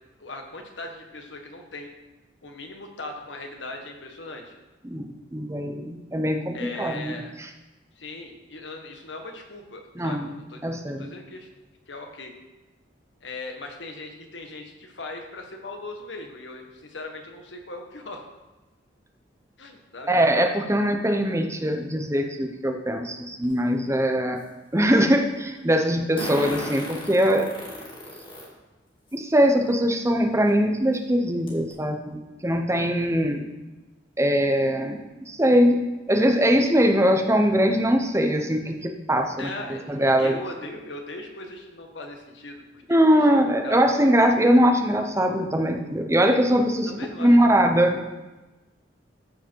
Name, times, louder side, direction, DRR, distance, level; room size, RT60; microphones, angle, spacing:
voice 1, 0.2-1.9 2.4-4.5 6.5-7.3 7.9-10.6 11.0-11.5 11.9-12.3 13.2-18.2 19.6-20.1 39.4-43.2 43.6-43.8 46.9-47.5, left 2 dB, 85° left, 3 dB, 1.5 m, -39 dB
voice 2, 5.3-7.5 10.0-10.3 10.6-11.1 20.1-24.4 24.7-27.5 29.1-33.4 34.2-35.0 35.2-35.8 36.1-39.5 39.9-40.4 42.9-46.9 47.2-48.1, equal, 15° right, 4 dB, 0.9 m, -21 dB
Fart, 23.4-23.5 26.2-28.5 29.1-29.2 30.5-30.6 30.9-31.0 31.5-31.7, left 1 dB, 30° left, 2.5 m, -34 dB
14.0 x 5.1 x 4.6 m, 1.1 s
head